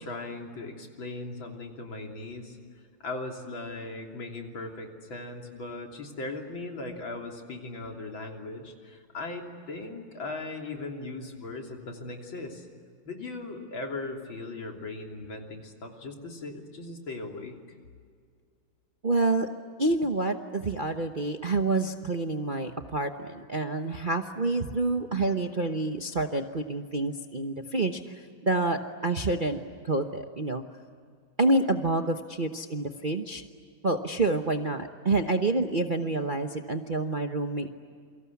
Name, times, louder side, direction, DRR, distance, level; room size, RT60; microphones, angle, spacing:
voice 1, 0.0-2.6 3.0-12.7 13.1-17.8, left 2 dB, 70° left, 2 dB, 3.9 m, -38 dB
voice 2, 19.0-19.5 19.8-30.6 31.4-33.4 33.8-37.7, right 2 dB, 35° right, 5 dB, 0.9 m, -28 dB
28.5 x 24.5 x 8.5 m, 2.1 s
omnidirectional pair, 2.2 m